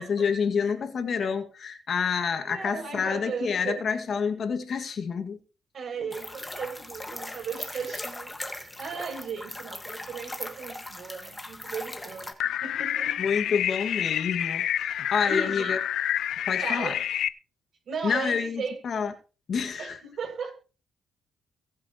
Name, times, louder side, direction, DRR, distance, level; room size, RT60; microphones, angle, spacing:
voice 1, 0.0-5.4 13.2-15.8 16.5-16.9 18.0-19.1 19.5-20.0, left 6 dB, 55° left, 2.0 m, -28 dB
voice 2, 2.5-3.8 5.7-13.2 13.4-13.5 15.3-15.8 16.6-17.0 17.8-18.8 19.8-20.5, right 5 dB, 55° right, 6.6 m, -36 dB
sound 1, 6.1-12.3, left 1 dB, 15° left, 1.7 m, -39 dB
sound 2, 12.4-17.3, left 10 dB, 75° left, 0.6 m, -28 dB
23.0 x 8.2 x 3.0 m
cardioid pair, 90°, 0 cm